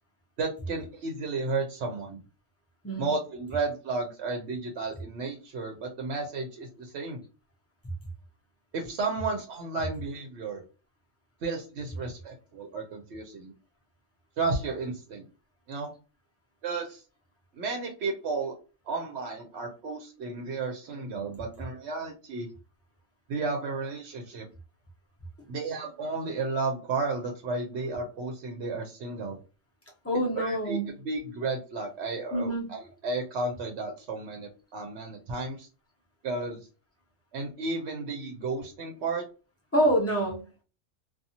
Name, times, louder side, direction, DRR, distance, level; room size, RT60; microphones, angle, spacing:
voice 1, 0.4-2.2 3.0-7.2 8.7-10.6 11.4-13.5 14.4-15.3 15.7-15.9 16.6-17.0 17.5-18.5 18.8-22.5 23.3-24.5 25.5-29.4 30.4-35.7 36.2-36.6 37.3-39.2, right 3 dB, 65° right, 3 dB, 0.8 m, -33 dB
voice 2, 30.0-30.9 32.3-32.7 39.7-40.6, right 1 dB, 15° left, -3 dB, 0.7 m, -26 dB
2.6 x 2.3 x 2.7 m, 0.33 s
omnidirectional pair, 1.3 m